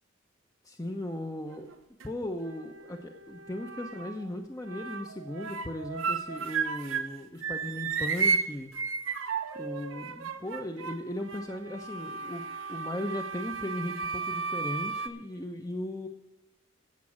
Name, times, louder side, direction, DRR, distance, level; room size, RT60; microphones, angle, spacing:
voice 1, 0.6-1.7 2.0-8.7 9.5-16.1, left 1 dB, 20° left, 4 dB, 0.9 m, -37 dB
sound 1, 1.5-2.1 2.5-4.3 4.6-7.2 7.4-15.1, right 5 dB, 90° right, 1.1 m, -34 dB
16.0 x 7.6 x 6.3 m, 1.0 s
head